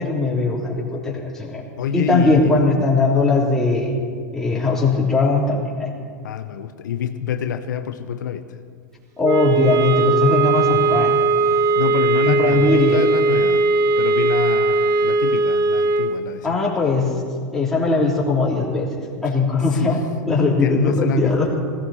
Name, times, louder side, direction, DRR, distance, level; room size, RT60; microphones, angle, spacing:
voice 1, 0.0-1.6 1.9-3.9 4.3-5.9 9.2-11.2 12.3-13.0 16.4-17.1 17.5-21.5, left 3 dB, 5° left, -5 dB, 3.2 m, -20 dB
voice 2, 1.8-2.6 6.2-8.6 11.7-13.7 14.0-16.6 19.7-21.6, left 8 dB, 80° left, 8 dB, 0.9 m, -27 dB
sound 1, 9.2-16.2, right 3 dB, 35° right, 0.8 m, -18 dB
19.0 x 16.0 x 4.3 m, 2.2 s
hypercardioid pair, 125°, 10 cm